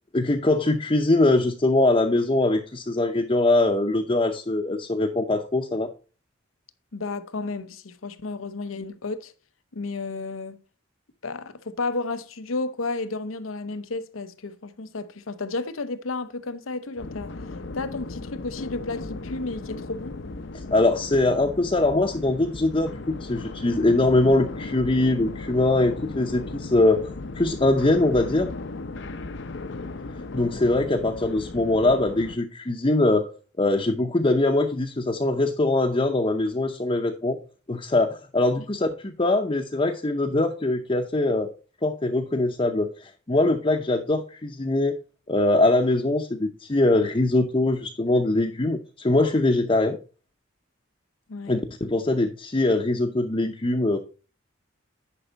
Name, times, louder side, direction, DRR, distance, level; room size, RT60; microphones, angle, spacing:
voice 1, 0.1-5.9 20.7-27.1 27.4-28.5 30.3-33.3 33.6-37.4 37.7-41.5 41.8-45.0 45.3-50.0 51.5-54.0, left 2 dB, 25° left, 0.7 m, -22 dB
voice 2, 6.9-9.3 9.7-10.6 11.2-17.3 17.7-20.2 30.5-30.8 38.6-38.7 51.3-51.6, left 3 dB, 90° left, 0.8 m, -32 dB
sound 1, 17.0-32.4, left 3 dB, 60° left, 0.6 m, -36 dB
10.0 x 5.4 x 4.0 m
head